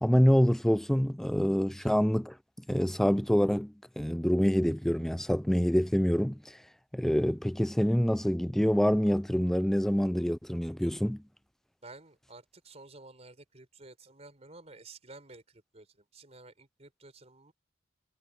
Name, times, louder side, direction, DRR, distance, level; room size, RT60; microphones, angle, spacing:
voice 1, 0.0-2.4 2.7-6.6 6.9-11.2, equal, ahead, 0.3 m, -26 dB
voice 2, 11.8-17.5, right 3 dB, 35° right, 4.2 m, -52 dB
head